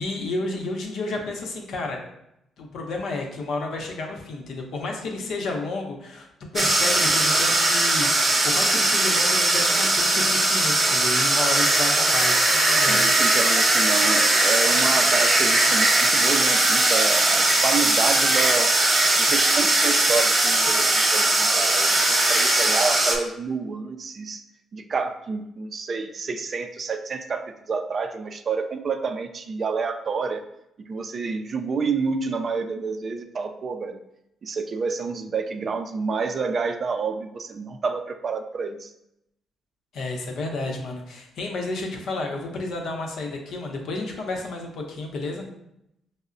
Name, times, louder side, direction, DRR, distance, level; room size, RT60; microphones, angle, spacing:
voice 1, 0.0-2.0 2.6-6.3 6.5-8.1 8.4-13.1 39.9-45.4, left 3 dB, 70° left, 1 dB, 0.7 m, -31 dB
sound 1, 6.6-23.2, right 2 dB, 30° right, 0.9 m, -20 dB
voice 2, 12.9-18.8 19.2-24.4 24.7-30.4 30.9-34.0 34.4-38.9, right 5 dB, 45° right, 7 dB, 0.3 m, -29 dB
5.3 x 2.0 x 2.5 m, 0.81 s
cardioid pair, 90°, 0 cm